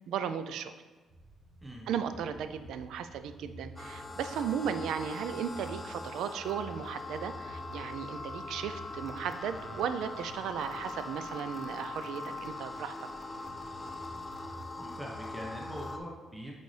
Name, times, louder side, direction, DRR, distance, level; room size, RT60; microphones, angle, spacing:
voice 1, 0.1-0.7 1.9-12.9, right 8 dB, 80° right, 10 dB, 0.4 m, -36 dB
sound 1, 1.1-16.0, right 1 dB, 50° right, 1.9 m, -51 dB
sound 2, 3.8-16.0, left 3 dB, 20° left, 0.5 m, -42 dB
voice 2, 14.8-16.6, equal, 10° right, -2 dB, 0.9 m, -42 dB
8.1 x 4.0 x 3.3 m, 1.3 s
cardioid pair, 90°, 0 cm